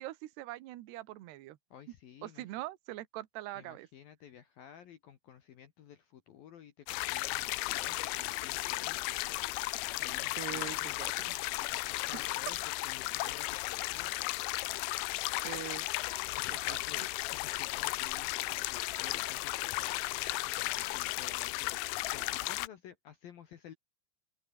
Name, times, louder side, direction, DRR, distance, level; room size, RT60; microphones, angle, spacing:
voice 1, 0.0-1.6 2.2-3.9 10.4-11.4 12.1-12.2 15.4-15.9 16.7-17.1, right 16 dB, 70° right, 3.2 m, -43 dB
voice 2, 1.7-2.5 3.5-9.3 10.0-11.0 11.6-12.6 12.8-14.1 16.4-17.0 17.3-20.0 20.4-23.7, left 9 dB, 60° left, 3.0 m, -53 dB
sound 1, 6.9-22.7, left 20 dB, 85° left, 3.1 m, -35 dB
open air
omnidirectional pair, 5.3 m